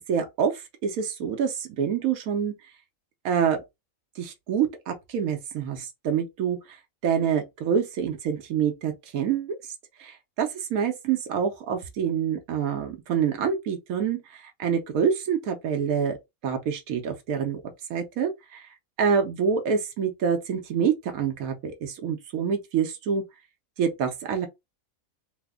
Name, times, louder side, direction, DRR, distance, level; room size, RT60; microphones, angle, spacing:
voice 1, 0.1-2.5 3.2-3.6 4.2-6.8 7.0-9.6 10.0-16.2 16.4-17.6 17.9-18.7 19.0-23.2 23.8-24.5, right 7 dB, 85° right, 1.1 m, -26 dB
3.3 x 2.0 x 3.5 m
omnidirectional pair, 1.5 m